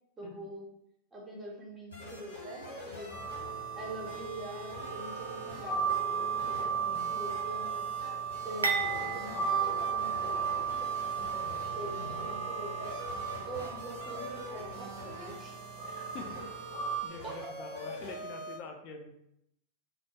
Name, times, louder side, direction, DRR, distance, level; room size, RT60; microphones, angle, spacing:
voice 1, 0.2-0.7 1.1-3.2 3.7-7.6 8.4-10.9 11.7-13.0 13.4-15.6 17.2-17.4, right 1 dB, 20° right, -2 dB, 0.6 m, -44 dB
sound 1, 1.9-18.6, equal, 85° left, 1.2 m, -45 dB
sound 2, 3.1-17.0, right 6 dB, 70° left, 0.7 m, -35 dB
sound 3, 8.6-10.8 11.1-11.3 12.2-12.3, right 5 dB, 80° right, 0.3 m, -35 dB
voice 2, 12.0-12.3 15.8-16.5 17.0-19.1, left 4 dB, 40° left, 3 dB, 0.4 m, -46 dB
2.2 x 2.1 x 2.7 m, 0.78 s
figure-of-eight pair, 90°, 0 cm